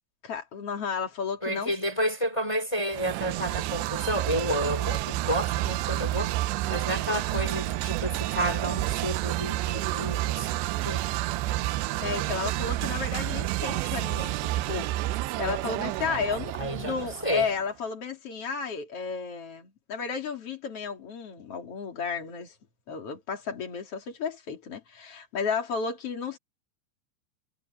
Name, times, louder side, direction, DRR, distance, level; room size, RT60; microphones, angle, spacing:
voice 1, 0.2-1.7 11.7-22.5 22.9-26.4, left 5 dB, 35° left, 3.1 m, -33 dB
voice 2, 1.4-6.3 6.7-11.1 16.6-17.5, equal, 10° left, 2.4 m, -31 dB
sound 1, 2.9-17.6, right 16 dB, 80° right, 2.6 m, -30 dB
omnidirectional pair, 5.4 m